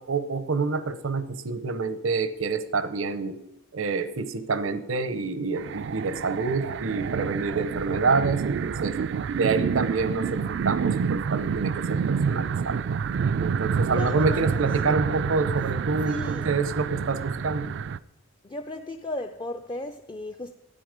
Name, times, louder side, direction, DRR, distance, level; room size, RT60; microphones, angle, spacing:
voice 1, 0.0-3.4 3.7-8.9 9.4-12.8 13.4-17.7, right 4 dB, 80° right, 0.8 m, -27 dB
sound 1, 5.6-18.0, right 6 dB, 60° right, 0.3 m, -28 dB
voice 2, 13.9-14.4 14.8-15.2 16.0-16.5 18.4-20.5, left 2 dB, 20° left, 0.4 m, -36 dB
12.5 x 9.7 x 5.1 m
head